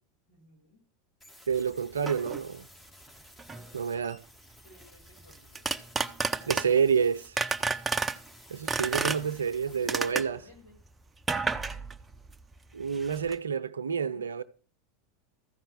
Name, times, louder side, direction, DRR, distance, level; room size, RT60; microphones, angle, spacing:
voice 1, 0.3-0.8 3.4-4.1 4.6-5.9 6.3-6.8 9.7-10.8 14.0-14.3, left 1 dB, 75° left, 6.5 m, -58 dB
sound 1, 1.2-10.1, left 1 dB, 20° left, 3.1 m, -55 dB
sound 2, 1.5-1.6 2.1-2.4 3.4-3.7 5.3-6.9 7.4-8.2 8.7-9.6 9.9-10.4 11.2-12.6 12.8-13.4, right 4 dB, 15° right, 0.8 m, -31 dB
voice 2, 1.5-2.7 3.7-4.2 6.5-7.4 8.5-10.4 12.7-14.4, right 7 dB, 80° right, 0.6 m, -28 dB
14.0 x 5.6 x 7.9 m
hypercardioid pair, 85°, 0 cm